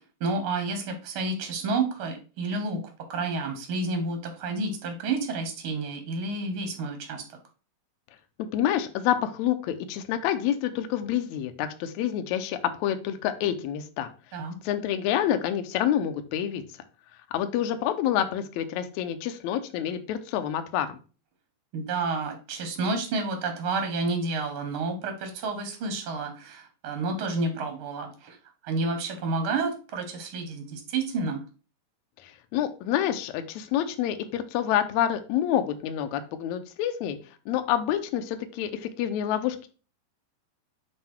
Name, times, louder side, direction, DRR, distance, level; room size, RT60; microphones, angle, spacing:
voice 1, 0.2-2.8 3.1-7.2 14.3-14.6 21.7-28.4 28.6-31.4, right 3 dB, 60° right, 5 dB, 1.5 m, -30 dB
voice 2, 8.5-14.1 14.6-16.6 17.3-21.0 32.2-37.2 37.5-39.7, left 10 dB, 75° left, 8 dB, 1.8 m, -28 dB
7.6 x 3.1 x 4.4 m, 0.35 s
omnidirectional pair, 3.9 m